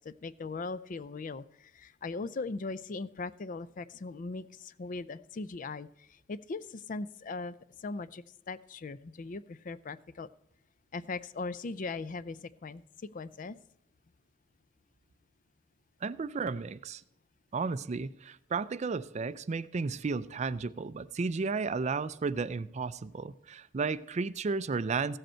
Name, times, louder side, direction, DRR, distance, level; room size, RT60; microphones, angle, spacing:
voice 1, 0.0-10.3 10.9-12.8 13.1-13.6, left 3 dB, 45° left, 0.4 m, -39 dB
voice 2, 16.0-17.0 17.5-25.2, right 4 dB, 35° right, 0.4 m, -33 dB
15.0 x 7.8 x 4.4 m
head